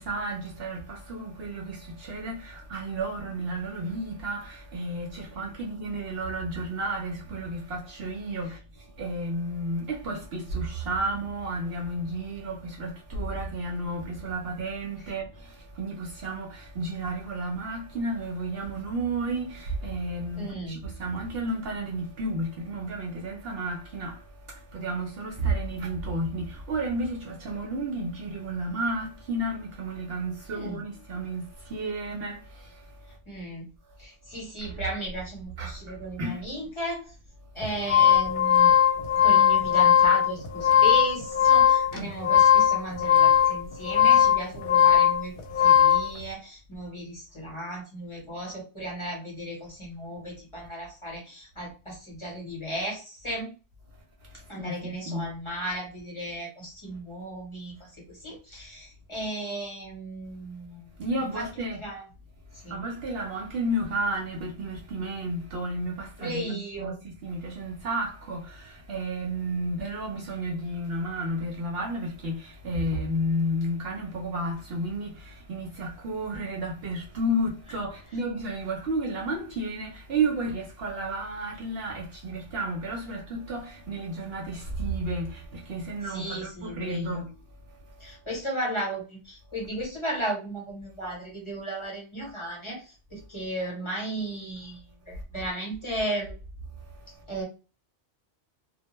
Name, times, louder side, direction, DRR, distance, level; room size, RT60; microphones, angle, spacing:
voice 1, 0.0-8.6 9.0-32.8 34.6-34.8 35.6-36.4 42.0-42.1 54.6-55.3 61.0-61.8 62.7-87.3, right 1 dB, 65° right, 0.7 m, -32 dB
voice 2, 20.3-20.8 30.5-30.8 33.3-33.7 34.0-37.1 37.5-38.7 39.2-45.3 45.6-53.5 54.5-60.9 61.2-61.5 61.8-62.1 62.6-62.9 66.2-67.0 86.0-87.2 88.0-96.3 97.3-97.4, right 1 dB, 25° left, 1.0 m, -35 dB
sound 1, 37.6-46.1, left 9 dB, 75° left, 0.9 m, -19 dB
2.2 x 2.1 x 2.9 m
omnidirectional pair, 1.2 m